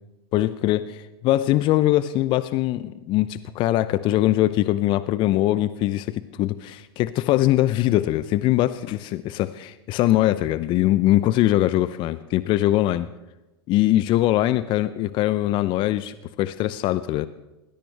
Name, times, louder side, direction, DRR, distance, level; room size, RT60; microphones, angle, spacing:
voice 1, 0.3-13.1 13.7-17.3, left 15 dB, 40° left, 15 dB, 0.7 m, -22 dB
20.5 x 20.0 x 3.4 m, 1.0 s
hypercardioid pair, 95°, 13 cm